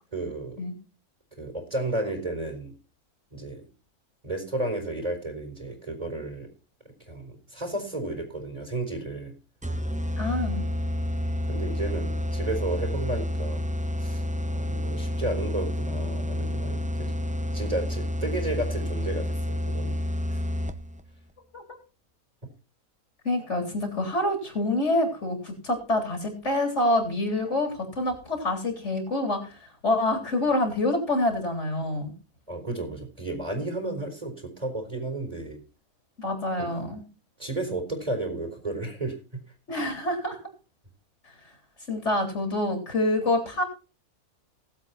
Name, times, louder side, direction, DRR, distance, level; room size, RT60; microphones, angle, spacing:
voice 1, 0.1-0.6 1.4-2.7 3.3-3.6 4.2-6.5 7.1-9.4 11.1-13.6 14.0-17.1 17.5-20.0 20.3-20.4 32.5-35.6 36.6-36.7 37.4-39.2, right 2 dB, 25° right, 3 dB, 4.0 m, -33 dB
sound 1, 9.6-21.0, left 1 dB, 10° right, 0.5 m, -29 dB
voice 2, 10.2-10.7 21.5-21.6 23.2-32.1 36.2-37.0 39.7-40.4 41.9-43.6, left 1 dB, 50° left, 3 dB, 4.0 m, -26 dB
19.5 x 8.0 x 4.2 m, 0.34 s
omnidirectional pair, 1.5 m